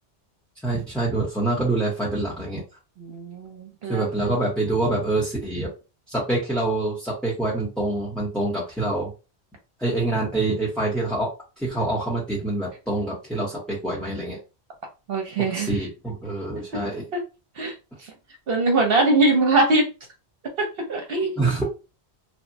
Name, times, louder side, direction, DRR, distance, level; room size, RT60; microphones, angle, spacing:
voice 1, 0.6-2.6 3.9-5.7 6.1-9.1 9.8-11.3 11.6-14.4 15.4-17.0 21.4-21.6, right 2 dB, ahead, 0.7 m, -26 dB
voice 2, 3.0-4.3 15.1-15.8 16.7-16.8 17.6-17.7 18.0-18.1 18.5-19.9 20.6-21.6, right 2 dB, 65° right, 0.8 m, -22 dB
3.2 x 2.0 x 2.6 m
omnidirectional pair, 1.1 m